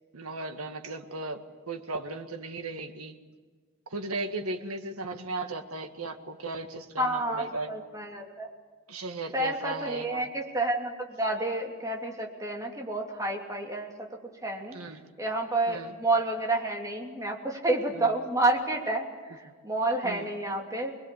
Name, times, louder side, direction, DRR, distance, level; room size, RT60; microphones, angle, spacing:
voice 1, 0.1-3.2 3.9-7.8 8.9-10.3 14.7-15.0 15.7-15.9 17.9-18.1 20.0-20.3, right 2 dB, 90° right, 7 dB, 1.9 m, -36 dB
voice 2, 7.0-8.5 9.3-14.1 14.4-20.9, right 2 dB, 15° right, 1 dB, 2.9 m, -30 dB
25.5 x 21.5 x 8.4 m, 1.5 s
head